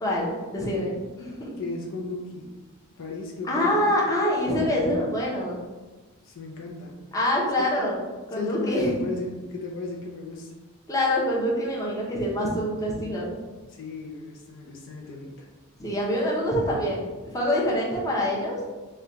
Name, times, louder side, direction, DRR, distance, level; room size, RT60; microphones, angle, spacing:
voice 1, 0.0-1.6 3.5-5.6 7.1-8.9 10.9-13.4 15.8-17.0 17.3-18.7, left 1 dB, 15° left, -5 dB, 0.7 m, -25 dB
voice 2, 1.6-2.5 3.0-3.9 6.2-7.0 7.6-7.7 8.3-10.5 13.7-15.5, left 3 dB, 60° left, -1 dB, 0.5 m, -34 dB
3.2 x 2.2 x 3.8 m, 1.2 s
head